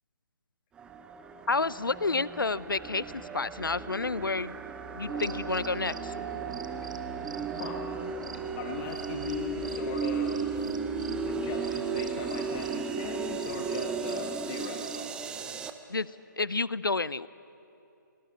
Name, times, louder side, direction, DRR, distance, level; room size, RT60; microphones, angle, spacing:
sound 1, 0.8-15.7, right 5 dB, 10° right, 0.7 m, -35 dB
voice 1, 1.5-3.0 3.3-4.6 4.9-6.1 15.9-16.1 16.4-17.3, left 3 dB, 85° left, 19 dB, 0.7 m, -29 dB
sound 2, 5.1-12.9 13.2-15.1, right 4 dB, 70° right, 1.4 m, -45 dB
voice 2, 7.5-7.9 8.5-10.6 11.1-15.1, left 6 dB, 25° left, 2 dB, 1.4 m, -39 dB
sound 3, 10.5-12.1, left 4 dB, 50° left, 2.3 m, -54 dB
23.5 x 19.0 x 8.7 m, 2.7 s
figure-of-eight pair, 145°, 11 cm